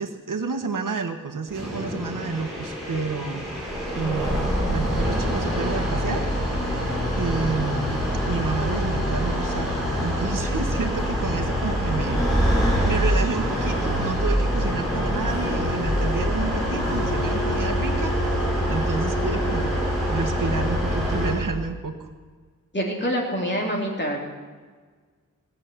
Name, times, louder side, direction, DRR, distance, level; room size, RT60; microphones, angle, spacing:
voice 1, 0.0-3.5 3.9-6.3 7.2-8.0 8.3-19.7 20.1-22.1, right 4 dB, 75° right, 7 dB, 1.4 m, -30 dB
sound 1, 1.5-21.3, equal, ahead, 6.5 m, -25 dB
voice 2, 22.7-24.2, equal, 35° left, -1 dB, 3.6 m, -26 dB
18.0 x 7.5 x 9.6 m, 1.5 s
wide cardioid pair, 95°, 32 cm